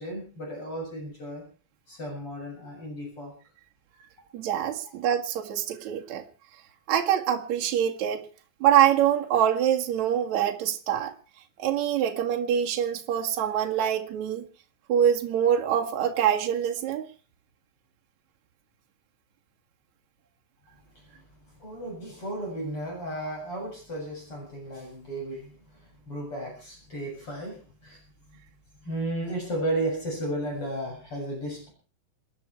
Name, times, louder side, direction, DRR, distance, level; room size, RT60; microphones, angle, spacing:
voice 1, 0.0-1.4 1.9-3.3 20.9-21.2 21.6-28.0 28.3-28.4 28.8-31.7, right 1 dB, 30° left, 8.1 m, -34 dB
voice 2, 4.3-6.2 6.9-8.3 8.6-11.1 11.6-14.5 14.9-17.1, right 10 dB, 50° right, 2.8 m, -24 dB
27.5 x 10.5 x 4.7 m
omnidirectional pair, 5.0 m